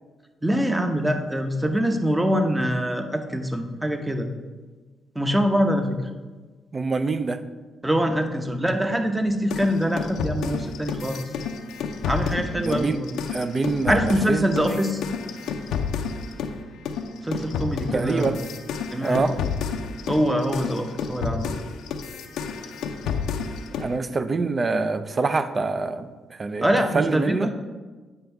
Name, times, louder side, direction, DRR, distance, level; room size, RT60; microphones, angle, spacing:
voice 1, 0.4-4.3 5.1-6.0 7.8-11.2 12.1-13.1 13.9-15.0 17.2-18.3 18.9-19.4 20.1-21.5 26.6-27.5, equal, 10° right, 6 dB, 0.8 m, -24 dB
voice 2, 6.7-7.4 12.5-13.0 13.3-14.8 17.9-18.4 19.0-19.4 23.8-26.7 26.9-27.5, right 3 dB, 40° right, 11 dB, 0.5 m, -25 dB
sound 1, 9.5-16.6 16.8-23.9, left 6 dB, 80° left, 0.5 m, -30 dB
8.8 x 5.3 x 3.4 m, 1.3 s
supercardioid pair, 65°, 0 cm